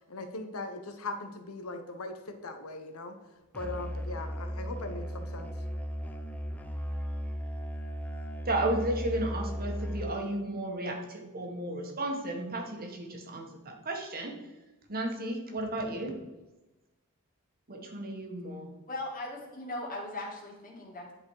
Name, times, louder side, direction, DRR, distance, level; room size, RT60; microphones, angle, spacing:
voice 1, 0.1-3.1 3.5-5.5, left 2 dB, 70° left, 7 dB, 1.1 m, -39 dB
Musical instrument, 3.5-10.3, equal, 5° left, 0.7 m, -36 dB
voice 2, 8.4-14.3 14.9-16.1 17.7-18.7, right 1 dB, 45° right, 2 dB, 1.6 m, -33 dB
voice 3, 18.9-21.1, left 2 dB, 40° left, -2 dB, 2.5 m, -38 dB
11.0 x 5.0 x 4.8 m, 1.1 s
head